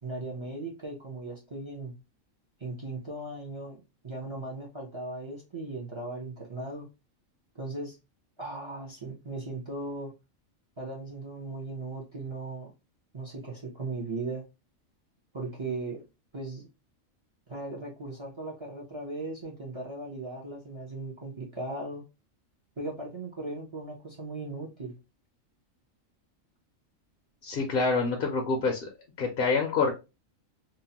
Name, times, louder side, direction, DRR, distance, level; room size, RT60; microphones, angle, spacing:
voice 1, 0.0-1.9 2.6-6.9 7.5-8.0 8.4-10.1 10.8-12.7 13.1-14.4 15.3-16.0 16.3-16.6 17.5-22.0 22.8-24.9, right 2 dB, 40° right, 0.4 m, -37 dB
voice 2, 27.4-28.9 29.2-29.9, left 4 dB, 60° left, 0.6 m, -26 dB
2.8 x 2.1 x 2.7 m
omnidirectional pair, 1.4 m